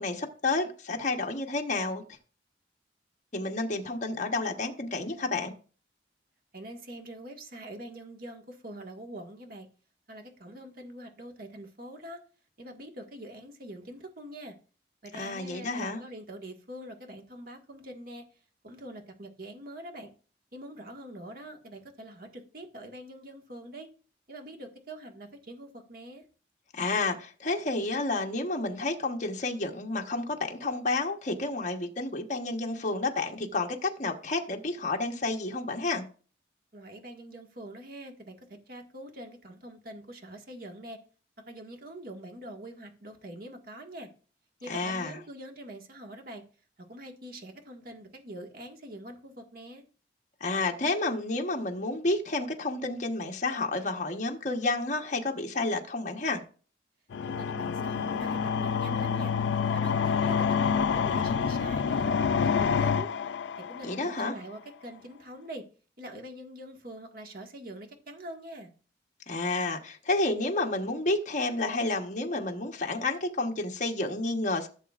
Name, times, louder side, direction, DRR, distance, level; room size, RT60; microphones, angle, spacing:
voice 1, 0.0-2.0 3.3-5.5 15.1-16.0 26.7-36.0 44.7-45.2 50.4-56.4 63.8-64.4 69.3-74.7, left 2 dB, 45° left, 1.2 m, -30 dB
voice 2, 6.5-9.7 10.1-12.2 12.6-14.5 15.0-18.3 18.6-20.1 20.5-23.9 24.3-26.2 36.7-38.4 38.7-41.0 41.4-44.1 44.6-46.4 46.9-49.8 57.2-59.3 59.7-63.1 63.6-65.6 66.0-68.7, right 1 dB, 55° right, 1.7 m, -44 dB
sound 1, 57.1-64.1, left 6 dB, 80° left, 0.4 m, -27 dB
15.0 x 7.2 x 2.5 m
head